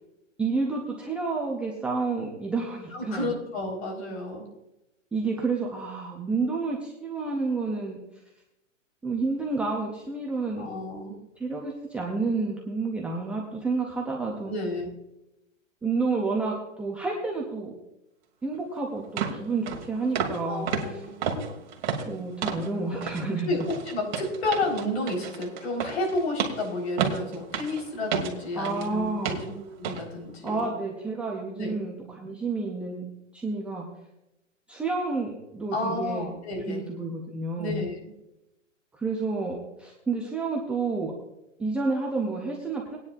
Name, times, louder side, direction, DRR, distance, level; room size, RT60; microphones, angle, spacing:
voice 1, 0.4-3.3 5.1-8.0 9.0-10.7 11.4-14.5 15.8-17.7 18.4-20.7 22.1-23.5 28.6-29.4 30.4-33.1 33.3-33.9 34.7-36.3 36.7-37.8 38.9-41.1 41.6-43.0, right 3 dB, 5° right, -2 dB, 0.5 m, -30 dB
voice 2, 2.9-4.5 10.6-11.2 14.5-14.9 20.5-21.2 23.5-23.6 23.8-30.7 31.6-31.8 35.7-36.9 37.6-38.1, left 2 dB, 55° left, 1 dB, 4.4 m, -31 dB
sound 1, 18.5-18.6 19.2-19.4 19.7-19.9 20.1-20.4 20.7-22.7 23.0-23.3 23.6-28.9 29.2-29.5 29.8-30.0 30.5-30.6, right 6 dB, 40° right, 2.0 m, -31 dB
19.5 x 9.8 x 2.5 m, 0.90 s
hypercardioid pair, 140°, 38 cm